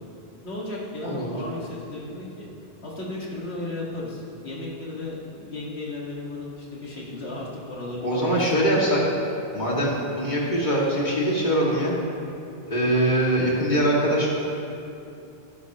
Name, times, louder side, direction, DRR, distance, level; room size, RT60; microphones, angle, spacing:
voice 1, 0.4-2.5 2.8-8.7, left 2 dB, 85° left, -5 dB, 2.2 m, -35 dB
voice 2, 1.0-1.4 8.0-9.0 9.5-11.9 12.7-14.3, right 1 dB, 45° left, -5 dB, 2.4 m, -22 dB
18.5 x 10.5 x 3.0 m, 2.7 s
omnidirectional pair, 1.1 m